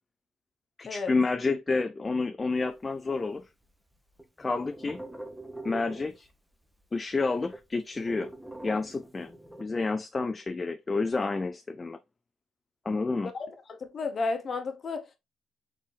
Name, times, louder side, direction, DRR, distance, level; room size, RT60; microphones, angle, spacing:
voice 1, 0.8-3.5 4.4-5.0 5.6-6.3 6.9-8.3 8.6-9.3 9.6-12.0 12.9-13.3, left 3 dB, 25° left, 0.4 m, -29 dB
sound 1, 2.5-3.7 4.0-6.6 6.8-6.9 7.1-9.6, right 1 dB, 5° right, 0.8 m, -44 dB
voice 2, 13.3-15.2, left 3 dB, 45° left, 0.9 m, -33 dB
4.1 x 3.5 x 3.3 m
cardioid pair, 90°, 0 cm